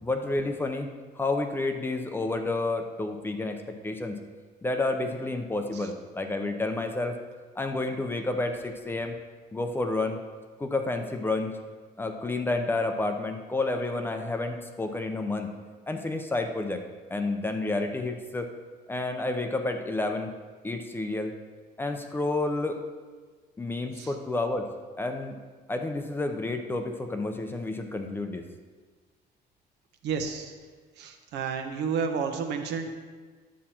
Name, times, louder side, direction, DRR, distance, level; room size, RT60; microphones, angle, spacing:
voice 1, 0.0-0.9 1.2-4.2 4.6-7.2 7.6-9.2 9.5-10.2 10.6-11.6 12.0-15.5 15.9-16.8 17.1-18.5 18.9-20.3 20.6-21.4 21.8-22.8 23.6-24.7 25.0-25.4 25.7-28.4, left 2 dB, 10° left, 5 dB, 0.6 m, -30 dB
voice 2, 30.0-30.5 31.0-32.9, right 6 dB, 75° right, 5 dB, 1.1 m, -31 dB
10.5 x 7.3 x 4.3 m, 1.4 s
cardioid pair, 160°, 18 cm